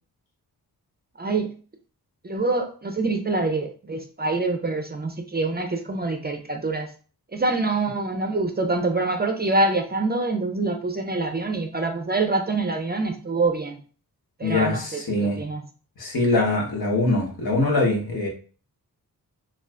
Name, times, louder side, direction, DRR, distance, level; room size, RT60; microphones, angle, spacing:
voice 1, 1.2-1.5 2.2-6.9 7.3-13.8 14.4-14.8 15.4-15.6, right 3 dB, 25° right, 5 dB, 0.5 m, -25 dB
voice 2, 14.4-15.4 16.0-18.3, left 2 dB, 70° left, -1 dB, 1.0 m, -23 dB
2.4 x 2.4 x 3.3 m, 0.40 s
cardioid pair, 50°, 39 cm